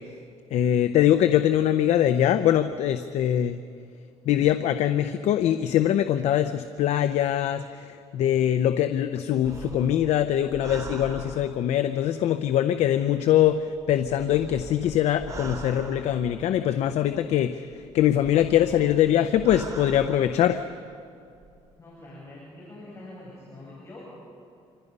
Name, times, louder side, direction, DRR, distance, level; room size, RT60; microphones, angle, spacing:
voice 1, 0.5-3.6 4.3-13.6 13.9-20.6, left 11 dB, 70° left, 9 dB, 0.8 m, -23 dB
sound 1, 9.4-12.0 13.2-16.8 17.7-20.7 21.3-21.7, right 3 dB, 30° right, 3.0 m, -41 dB
voice 2, 21.8-24.1, left 2 dB, 25° left, -6 dB, 7.9 m, -44 dB
27.5 x 25.5 x 5.5 m, 2.4 s
cardioid pair, 125°, 12 cm